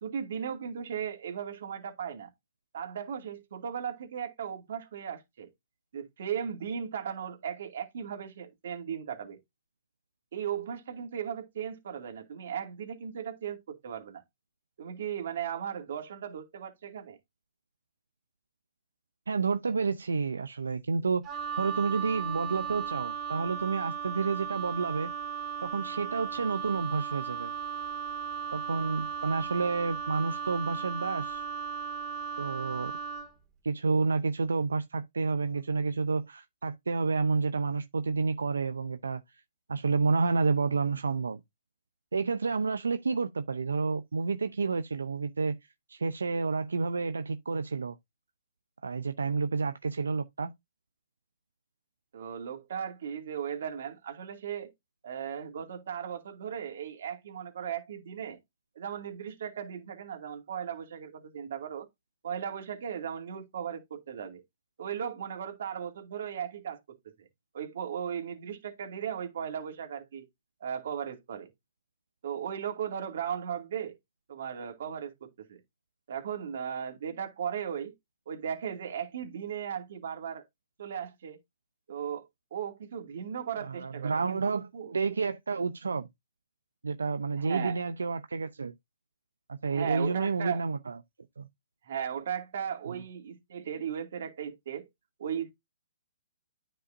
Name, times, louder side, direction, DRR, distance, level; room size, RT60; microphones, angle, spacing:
voice 1, 0.0-2.3 2.7-5.5 5.9-9.4 10.3-14.2 14.8-17.2 52.1-54.7 55.0-58.4 58.8-61.9 62.2-64.4 64.8-67.3 67.5-70.3 70.6-71.5 72.2-74.0 74.3-75.6 76.1-77.9 78.3-80.4 80.8-81.4 81.9-84.9 87.4-87.8 89.6-90.6 91.8-94.9 95.2-95.5, right 8 dB, 60° right, 2.4 m, -37 dB
voice 2, 19.3-21.2 21.6-25.1 25.6-27.5 28.5-31.4 32.4-32.9 33.6-39.2 39.7-41.4 42.1-45.6 45.9-48.0 48.8-50.5 83.6-86.1 86.8-88.7 89.5-91.0 91.4-91.5, right 4 dB, 90° right, 0.6 m, -30 dB
Wind instrument woodwind instrument, 21.2-33.3, right 7 dB, 20° right, 2.1 m, -36 dB
9.8 x 5.5 x 2.6 m
hypercardioid pair, 145°, 0 cm